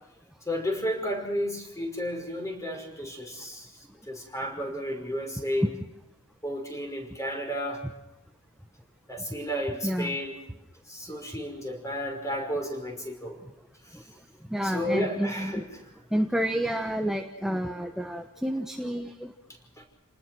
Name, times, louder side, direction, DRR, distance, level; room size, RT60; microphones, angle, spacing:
voice 1, 0.5-3.7 4.1-5.7 6.4-7.8 9.1-10.3 10.9-13.4 14.6-15.6 19.8-19.9, equal, 15° left, 3 dB, 5.7 m, -32 dB
voice 2, 9.8-10.2 13.9-14.0 14.5-15.6 16.1-19.3, equal, ahead, 4 dB, 1.2 m, -29 dB
29.5 x 19.5 x 6.3 m, 0.90 s
head